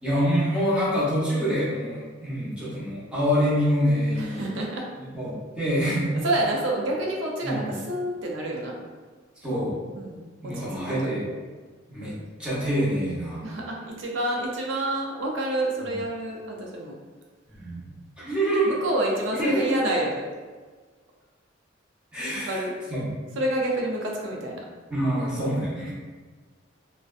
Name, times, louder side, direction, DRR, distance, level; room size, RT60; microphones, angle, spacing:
voice 1, 0.0-4.4 5.0-6.1 7.4-7.7 9.4-9.8 10.4-11.2 11.9-13.4 17.6-18.7 19.4-19.7 22.1-22.6 22.9-23.3 24.9-25.9, equal, 5° right, -10 dB, 0.8 m, -26 dB
voice 2, 4.2-4.9 6.2-8.8 9.9-11.2 12.0-12.2 13.4-17.0 18.6-20.3 22.4-22.7 23.4-24.6 25.2-25.4, right 1 dB, 65° right, -1 dB, 0.5 m, -28 dB
2.5 x 2.1 x 2.4 m, 1.4 s
head